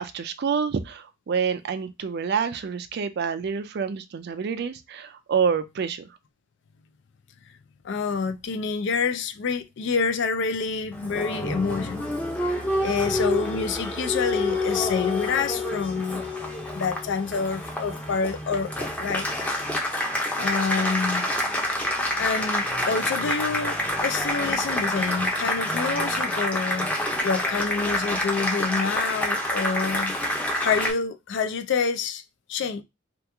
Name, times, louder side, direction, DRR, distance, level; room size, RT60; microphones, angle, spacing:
voice 1, 0.0-6.1, right 6 dB, 55° right, 0.4 m, -27 dB
voice 2, 7.8-12.5 12.8-16.2 16.7-19.4 20.4-21.3 22.2-26.9 27.2-32.2 32.5-32.8, left 5 dB, 65° left, 0.4 m, -27 dB
Applause, 10.9-30.9, left 1 dB, 10° left, 0.6 m, -27 dB
2.9 x 2.4 x 3.4 m
head